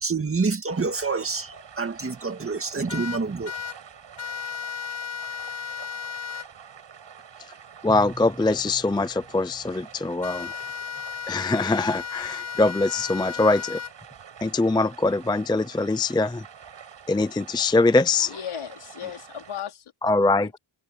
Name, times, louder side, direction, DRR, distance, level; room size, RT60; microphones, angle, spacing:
voice 1, 0.0-3.5, right 4 dB, 25° right, 2.1 m, -27 dB
sound 1, 0.7-19.6, right 7 dB, 60° right, 7.1 m, -47 dB
sound 2, 2.9-3.8 4.2-6.5 10.2-13.9, left 8 dB, 55° left, 5.5 m, -34 dB
voice 2, 7.8-10.5 11.3-13.8 14.4-16.4 17.1-18.3 20.0-20.6, left 3 dB, 10° left, 0.5 m, -23 dB
Bowed string instrument, 7.9-10.7, right 1 dB, 10° right, 7.4 m, -45 dB
voice 3, 18.1-19.9 20.4-20.6, left 9 dB, 80° left, 4.5 m, -36 dB
wide cardioid pair, 170°, 49 cm